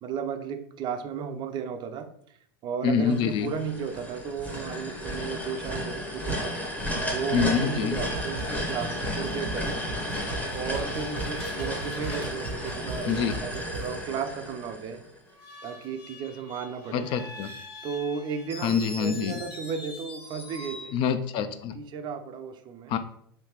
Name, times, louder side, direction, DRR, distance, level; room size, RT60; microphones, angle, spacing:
voice 1, 0.0-2.4 2.6-6.6 7.1-9.8 10.5-15.0 15.6-17.1 17.8-20.9 21.7-23.0, right 6 dB, 35° right, 8 dB, 0.4 m, -34 dB
voice 2, 2.8-3.5 7.3-8.0 13.1-13.4 16.9-17.5 18.6-19.4 20.9-21.8 22.9-23.0, left 7 dB, 40° left, 10 dB, 0.3 m, -26 dB
sound 1, 3.1-15.2, equal, 10° left, 0.8 m, -33 dB
sound 2, 7.1-7.2 7.5-7.9 8.1-13.9, right 3 dB, 85° right, 0.8 m, -39 dB
Screech, 10.7-13.6 15.3-21.0, left 1 dB, 80° left, 1.3 m, -44 dB
3.3 x 2.7 x 2.9 m, 0.67 s
hypercardioid pair, 95°, 13 cm